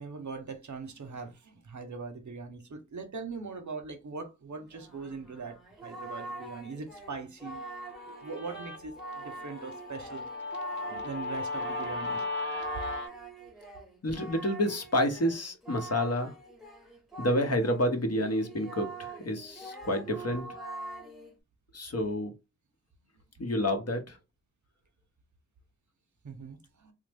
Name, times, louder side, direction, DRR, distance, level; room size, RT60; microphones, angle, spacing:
voice 1, 0.0-5.6 5.8-7.6 8.0-10.3 10.8-12.3 26.2-26.9, right 4 dB, 70° right, 0.7 m, -41 dB
Singing, 4.7-17.8 18.1-21.4, right 3 dB, ahead, 0.8 m, -44 dB
Guitar, 7.6-13.1, left 2 dB, 35° left, 1.0 m, -37 dB
voice 2, 14.0-16.3 17.2-20.4 21.7-22.3 23.4-24.2, left 1 dB, 55° left, 0.8 m, -29 dB
3.0 x 2.0 x 3.3 m
wide cardioid pair, 45°, 31 cm